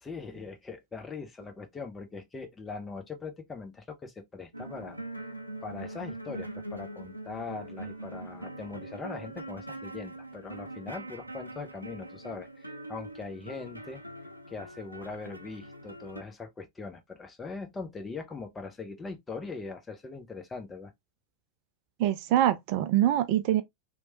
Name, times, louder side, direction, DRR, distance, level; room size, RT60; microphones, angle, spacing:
voice 1, 0.0-5.3 5.6-14.0 14.5-20.9, left 4 dB, 15° left, 0.7 m, -41 dB
sound 1, 4.5-16.2, right 1 dB, 90° left, 0.4 m, -42 dB
voice 2, 22.0-23.6, right 12 dB, 45° right, 0.3 m, -24 dB
3.1 x 2.2 x 2.7 m
figure-of-eight pair, 90°, 0 cm